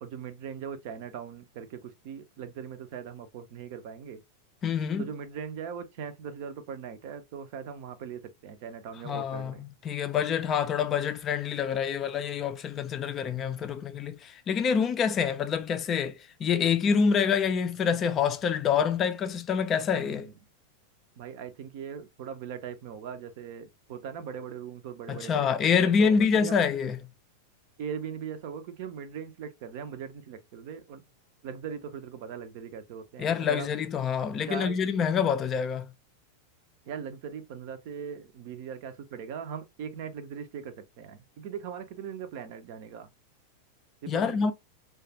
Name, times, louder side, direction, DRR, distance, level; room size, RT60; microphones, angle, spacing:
voice 1, 0.0-1.8 2.0-4.2 5.0-9.6 20.0-20.2 21.2-25.5 25.8-26.2 26.4-26.6 27.8-31.0 31.4-33.7 34.5-34.7 36.9-43.1 44.0-44.5, right 7 dB, 50° right, 0.5 m, -40 dB
voice 2, 4.6-5.1 9.0-20.3 25.1-27.0 33.2-35.9 44.1-44.5, left 6 dB, 30° left, 0.4 m, -26 dB
3.1 x 2.3 x 2.8 m
figure-of-eight pair, 90°, 0 cm